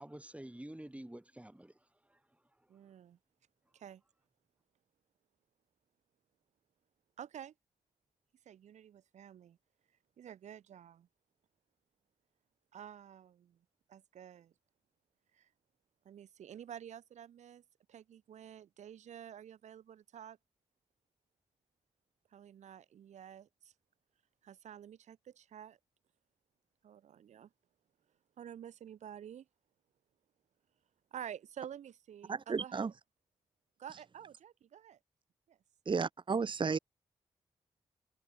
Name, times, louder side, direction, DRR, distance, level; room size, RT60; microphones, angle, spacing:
voice 1, 0.0-2.9, right 1 dB, 10° right, 7.2 m, -50 dB
voice 2, 2.7-3.2 3.7-4.0 7.2-7.5 8.4-9.6 10.2-11.1 12.7-13.6 13.9-14.5 15.3-15.5 16.0-17.6 17.9-20.4 22.3-23.5 24.4-25.8 26.8-27.5 28.4-29.4 31.1-32.9 33.8-35.0 35.5-35.6, right 9 dB, 85° right, 5.0 m, -50 dB
voice 3, 32.3-32.9 35.9-36.8, right 5 dB, 45° right, 0.8 m, -33 dB
supercardioid pair, 45°, 12 cm